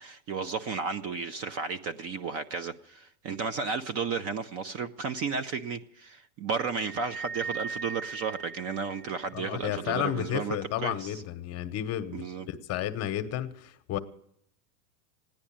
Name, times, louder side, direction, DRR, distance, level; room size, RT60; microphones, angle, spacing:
voice 1, 0.0-11.2 12.1-12.5, right 5 dB, 30° right, 0.6 m, -33 dB
sound 1, 6.8-9.4, right 5 dB, 45° right, 1.6 m, -39 dB
voice 2, 9.3-14.0, left 11 dB, 30° left, 1.0 m, -32 dB
15.5 x 10.5 x 8.7 m
supercardioid pair, 140°, 49 cm